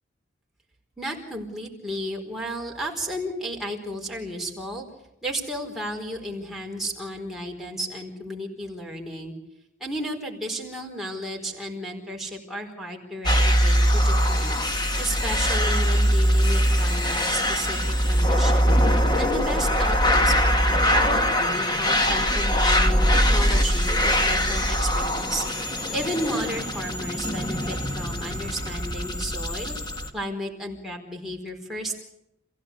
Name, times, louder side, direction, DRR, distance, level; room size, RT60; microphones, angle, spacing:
voice 1, 1.0-4.9 5.2-9.3 9.8-13.3 13.6-14.6 15.0-18.8 19.2-25.4 25.9-29.8 30.1-32.0, equal, ahead, -2 dB, 4.6 m, -33 dB
sound 1, 13.2-30.1, equal, 20° left, 1.9 m, -22 dB
28.0 x 16.0 x 8.3 m, 0.88 s
head